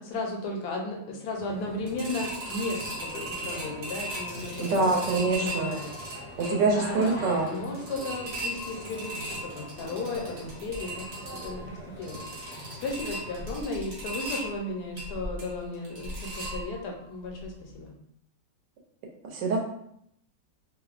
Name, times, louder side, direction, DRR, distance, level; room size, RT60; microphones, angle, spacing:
voice 1, 0.0-4.9 5.2-5.9 6.4-17.9, left 2 dB, 75° left, 0 dB, 1.1 m, -35 dB
sound 1, 1.4-13.6, equal, 50° left, 0.8 m, -44 dB
sound 2, 1.9-17.0 17.4-17.5 17.9-18.0, right 1 dB, 55° right, 1.1 m, -38 dB
voice 2, 4.6-5.7 6.4-7.5 19.2-19.6, right 3 dB, 85° right, 0 dB, 1.3 m, -25 dB
3.1 x 2.1 x 2.4 m, 0.72 s
omnidirectional pair, 1.8 m